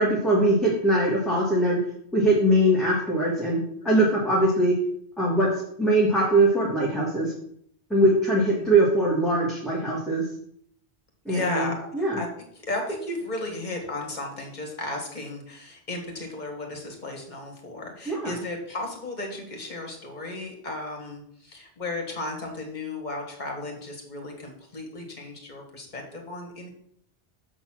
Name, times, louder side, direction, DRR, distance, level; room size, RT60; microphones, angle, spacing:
voice 1, 0.0-1.8 2.1-4.7 5.2-5.5 5.8-7.3 7.9-10.2 11.3-12.2 18.1-18.3, right 1 dB, ahead, -6 dB, 1.6 m, -22 dB
voice 2, 3.8-4.1 8.6-8.7 11.3-12.3 12.6-26.7, left 2 dB, 40° left, 2 dB, 1.8 m, -34 dB
7.3 x 4.1 x 6.1 m, 0.67 s
omnidirectional pair, 1.2 m